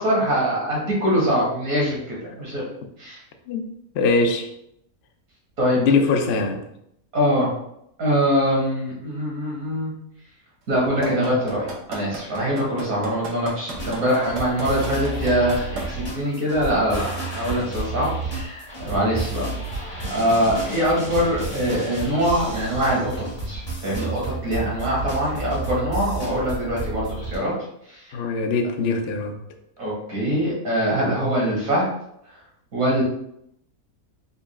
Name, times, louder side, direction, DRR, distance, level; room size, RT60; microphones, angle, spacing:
voice 1, 0.0-2.6 3.0-3.2 5.6-5.8 7.1-7.5 8.0-9.9 10.7-17.1 17.3-19.5 19.9-27.5 27.9-28.3 29.8-31.9 32.7-33.0, equal, 60° right, -4 dB, 1.7 m, -23 dB
voice 2, 3.9-4.5 5.8-6.7 28.1-29.4, left 4 dB, 85° left, 4 dB, 0.5 m, -22 dB
sound 1, 11.0-15.8 16.3-16.4, right 4 dB, 85° right, 1.5 m, -32 dB
sound 2, 13.7-27.4, right 2 dB, 25° left, 1.0 m, -31 dB
4.1 x 3.4 x 2.2 m, 0.75 s
omnidirectional pair, 1.7 m